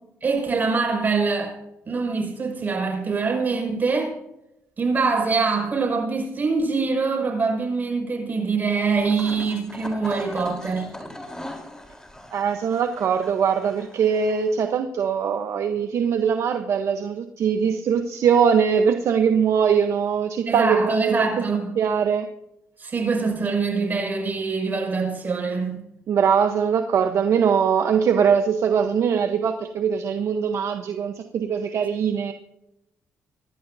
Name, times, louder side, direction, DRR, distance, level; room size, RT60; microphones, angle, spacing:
voice 1, 0.2-1.5 1.9-4.1 4.8-10.9 20.5-21.8 22.8-25.8, right 4 dB, 35° right, 6.1 m, -24 dB
sound 1, 8.9-14.7, left 1 dB, 10° left, 3.7 m, -40 dB
voice 2, 12.3-21.3 21.8-22.2 26.1-32.3, right 7 dB, 65° right, 1.0 m, -21 dB
25.0 x 12.0 x 2.7 m
cardioid pair, 85°, 5 cm